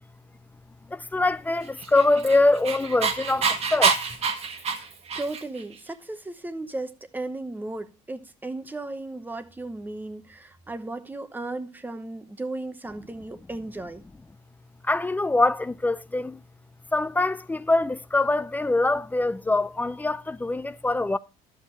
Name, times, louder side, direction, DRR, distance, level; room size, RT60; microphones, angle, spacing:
voice 1, 0.9-4.0 14.8-16.4 16.9-21.2, left 2 dB, 10° left, 0.4 m, -24 dB
Dog, 1.8-5.6, right 5 dB, 45° right, 1.4 m, -26 dB
voice 2, 5.2-14.0, right 2 dB, 10° right, 0.9 m, -35 dB
11.5 x 7.0 x 3.1 m
cardioid pair, 105°, 15 cm